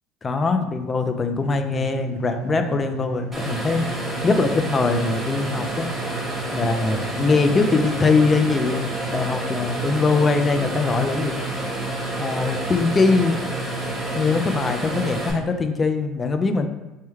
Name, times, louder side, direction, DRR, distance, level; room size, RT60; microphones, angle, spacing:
voice 1, 0.2-3.9 4.2-5.9 6.5-11.4 12.2-13.4 14.1-16.7, left 4 dB, 30° left, 7 dB, 0.3 m, -22 dB
sound 1, 1.4-15.5, right 4 dB, 80° right, 0.8 m, -33 dB
sound 2, 3.3-15.3, right 1 dB, 5° right, 0.8 m, -30 dB
3.4 x 2.1 x 3.0 m, 1.1 s
supercardioid pair, 95°, 0 cm